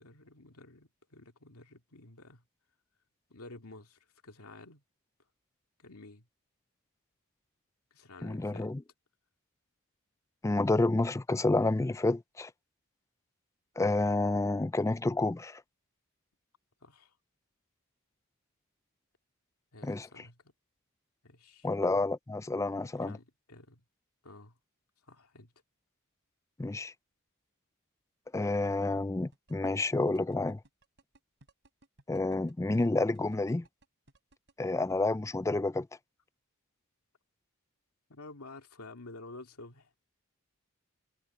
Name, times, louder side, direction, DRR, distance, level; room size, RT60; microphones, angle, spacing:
voice 1, 0.0-2.4 3.3-4.8 5.8-6.3 7.9-8.7 16.8-17.2 19.7-20.5 21.2-21.7 23.0-23.8 24.2-24.6 25.0-25.5 38.1-39.9, left 2 dB, 80° left, 2.4 m, -51 dB
voice 2, 8.2-8.8 10.4-12.5 13.8-15.6 19.8-20.1 21.6-23.2 26.6-26.9 28.3-30.6 32.1-33.6 34.6-35.9, left 2 dB, 15° left, 0.3 m, -29 dB
sound 1, 29.3-34.5, right 2 dB, 55° right, 3.6 m, -61 dB
head